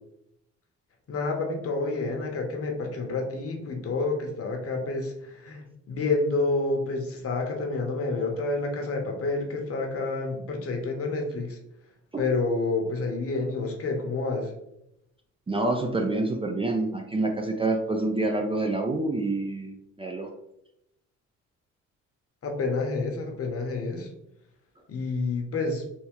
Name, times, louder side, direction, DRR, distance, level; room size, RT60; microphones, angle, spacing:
voice 1, 1.1-11.6 12.2-14.5 22.4-24.1 24.9-25.8, left 3 dB, 50° left, 2 dB, 0.9 m, -29 dB
voice 2, 15.5-20.3, right 2 dB, 20° right, 3 dB, 0.4 m, -27 dB
3.5 x 2.7 x 3.0 m, 0.81 s
cardioid pair, 90°, 30 cm